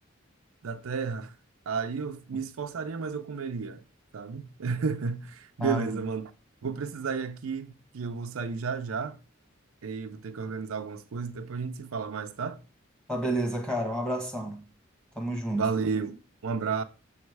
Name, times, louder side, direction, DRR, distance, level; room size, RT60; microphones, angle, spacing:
voice 1, 0.6-1.3 1.7-3.8 4.1-6.3 6.6-9.2 9.8-12.6 15.5-16.2 16.4-16.8, right 5 dB, 85° right, 0.5 m, -32 dB
voice 2, 5.6-6.0 13.1-14.6 15.1-15.7, right 1 dB, 5° left, 1.3 m, -30 dB
7.1 x 3.1 x 4.7 m
head